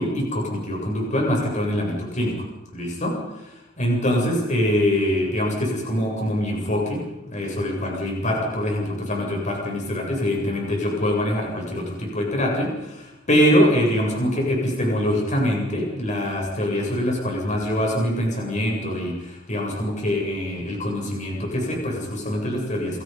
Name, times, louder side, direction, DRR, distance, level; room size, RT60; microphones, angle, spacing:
voice 1, 0.0-2.3 2.7-3.2 3.8-7.0 7.3-23.0, equal, 40° left, -1 dB, 7.6 m, -24 dB
29.5 x 23.5 x 5.5 m, 0.99 s
head